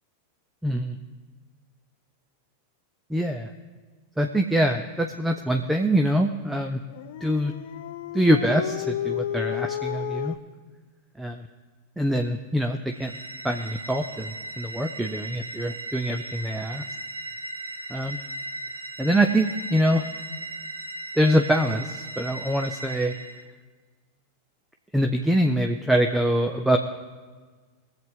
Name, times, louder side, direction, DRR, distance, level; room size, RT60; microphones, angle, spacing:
voice 1, 0.6-1.0 3.1-3.5 4.2-6.8 7.2-7.5 8.1-10.4 11.2-11.4 12.0-13.1 13.4-16.8 17.9-18.2 19.0-20.1 21.2-23.1 24.9-26.8, right 1 dB, 5° right, 4 dB, 0.7 m, -24 dB
Dog, 6.9-10.4, left 11 dB, 55° left, 0.5 m, -31 dB
sound 1, 12.9-23.4, right 2 dB, 85° right, 0.8 m, -37 dB
21.5 x 7.7 x 3.6 m, 1.4 s
figure-of-eight pair, 90°, 0 cm